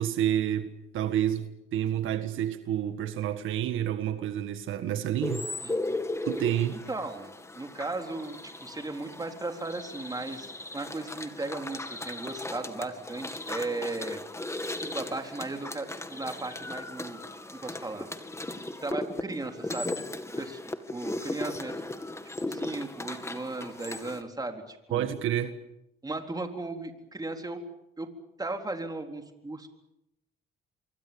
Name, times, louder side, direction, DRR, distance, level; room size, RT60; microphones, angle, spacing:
voice 1, 0.0-5.5 6.2-6.8 24.9-25.5, right 11 dB, 85° right, 1.8 m, -29 dB
sound 1, 5.2-24.2, left 2 dB, 15° left, 2.2 m, -37 dB
voice 2, 5.6-6.0 6.7-14.2 14.8-17.2 17.5-18.1 18.8-20.0 20.4-20.6 20.9-21.8 22.4-25.2 26.0-27.6 28.0-28.1 28.4-29.7, right 2 dB, 20° right, 3.9 m, -36 dB
26.5 x 23.5 x 7.1 m
cardioid pair, 90°, 20 cm